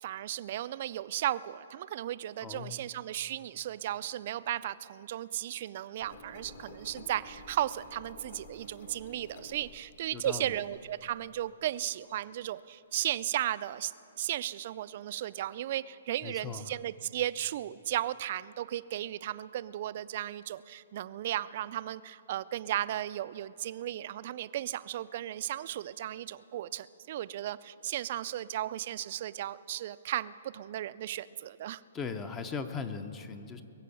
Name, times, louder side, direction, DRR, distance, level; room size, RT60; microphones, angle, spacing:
voice 1, 0.0-31.8, right 12 dB, 40° right, 16 dB, 0.3 m, -35 dB
voice 2, 2.4-2.8 10.1-10.5 16.2-16.7 31.9-33.6, left 5 dB, 15° left, 10 dB, 0.5 m, -38 dB
Engine, 6.0-11.5, left 1 dB, 45° left, 1.2 m, -51 dB
22.0 x 7.6 x 7.0 m, 2.7 s
hypercardioid pair, 165°, 0 cm